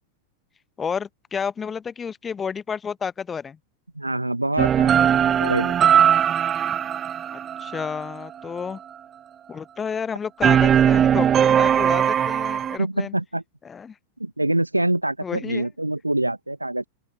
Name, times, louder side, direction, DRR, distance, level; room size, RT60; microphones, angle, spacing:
voice 1, 0.8-3.6 7.3-8.8 9.5-13.1 13.6-13.9 15.2-15.7, left 6 dB, 20° left, 0.8 m, -31 dB
voice 2, 4.0-5.9 12.8-13.4 14.2-16.9, right 1 dB, 85° right, 0.4 m, -25 dB
sound 1, 4.6-8.2 10.4-12.8, right 9 dB, 25° right, 0.5 m, -19 dB
open air
figure-of-eight pair, 90°, 0 cm